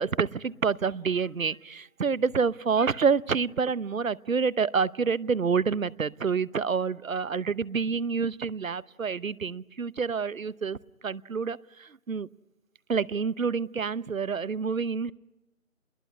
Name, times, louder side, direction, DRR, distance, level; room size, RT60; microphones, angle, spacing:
voice 1, 0.0-10.8 11.0-12.3 12.9-15.1, right 5 dB, 75° right, 20 dB, 0.9 m, -28 dB
28.5 x 21.5 x 9.7 m, 1.0 s
figure-of-eight pair, 165°, 41 cm